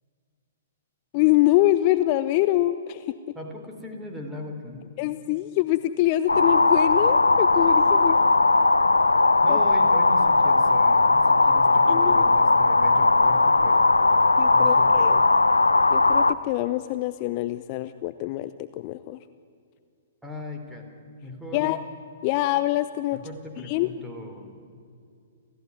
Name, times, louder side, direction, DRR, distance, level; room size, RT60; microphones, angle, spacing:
voice 1, 1.1-3.1 5.0-8.2 9.5-9.6 11.9-12.2 14.4-15.2 15.9-18.5 18.8-19.2 21.5-21.8 22.2-23.2 23.6-23.9, left 16 dB, 35° left, 12 dB, 0.7 m, -24 dB
voice 2, 3.3-4.9 9.4-13.9 14.5-15.2 20.2-20.9 21.2-21.8 23.1-24.7, left 1 dB, 5° right, 2 dB, 3.7 m, -38 dB
sound 1, 6.3-16.3, left 3 dB, 80° left, 0.7 m, -18 dB
29.5 x 14.5 x 9.8 m, 2.4 s
figure-of-eight pair, 115°, 0 cm